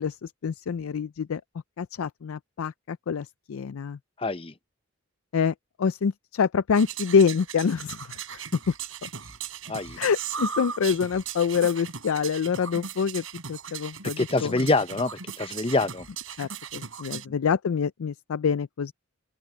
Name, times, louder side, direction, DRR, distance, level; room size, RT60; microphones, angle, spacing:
voice 1, 0.0-1.4 1.8-4.0 5.3-8.0 8.3-8.4 8.7-8.8 9.0-9.1 10.0-14.5 16.4-18.9, left 6 dB, 85° left, 0.4 m, -26 dB
voice 2, 4.2-4.5 9.7-10.0 14.2-16.1 17.1-17.2, left 2 dB, 25° left, 0.8 m, -26 dB
sound 1, 6.7-17.2, right 7 dB, 85° right, 3.6 m, -38 dB
open air
head